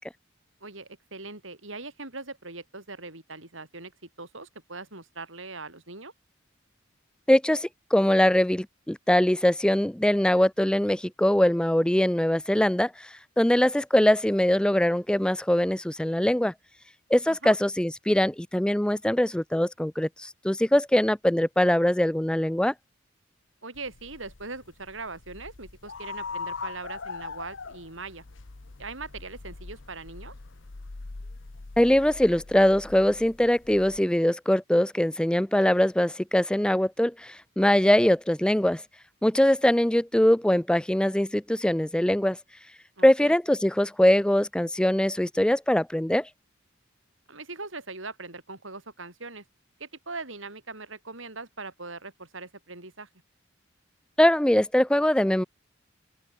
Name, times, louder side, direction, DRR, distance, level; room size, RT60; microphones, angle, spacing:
voice 1, 0.6-3.9 4.2-6.1 17.3-17.6 23.6-28.2 28.8-30.3 43.0-43.3 47.3-49.4 49.8-53.1, right 3 dB, 80° right, 7.9 m, -40 dB
voice 2, 7.3-16.5 17.1-22.7 31.8-38.8 39.2-42.4 43.0-46.3 54.2-55.4, left 1 dB, 5° left, 0.4 m, -22 dB
sound 1, 23.7-34.0, left 4 dB, 70° left, 1.0 m, -41 dB
open air
head